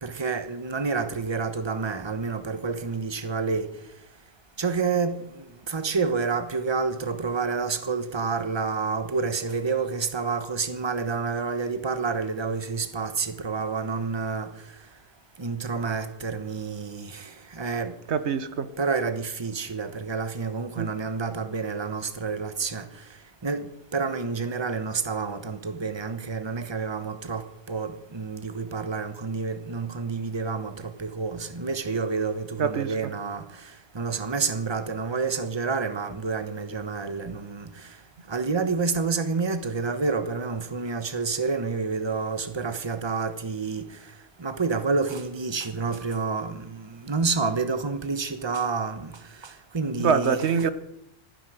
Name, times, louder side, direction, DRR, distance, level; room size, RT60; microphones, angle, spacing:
voice 1, 0.0-3.7 4.6-14.5 15.4-18.0 18.8-23.0 23.4-38.0 38.3-44.0 44.4-50.7, right 4 dB, 25° right, 1.1 m, -29 dB
voice 2, 18.1-18.7 20.8-20.9 32.6-32.9 50.0-50.7, right 6 dB, 85° right, 1.3 m, -24 dB
26.5 x 10.0 x 5.0 m
omnidirectional pair, 1.1 m